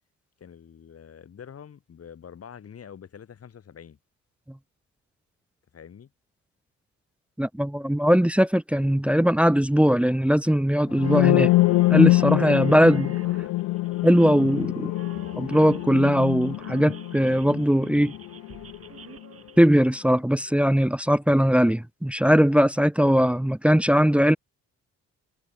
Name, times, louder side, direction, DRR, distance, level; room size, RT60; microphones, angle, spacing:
voice 1, 0.4-4.0 5.7-6.1, left 8 dB, 50° left, 5.5 m, -45 dB
voice 2, 7.4-11.5 11.9-13.1 14.0-14.9 15.4-18.1 19.6-24.4, equal, 5° right, 0.9 m, -20 dB
sound 1, 10.9-18.8, left 19 dB, 85° left, 0.6 m, -24 dB
sound 2, 11.0-19.7, right 7 dB, 50° right, 4.7 m, -46 dB
cardioid pair, 90°, 30 cm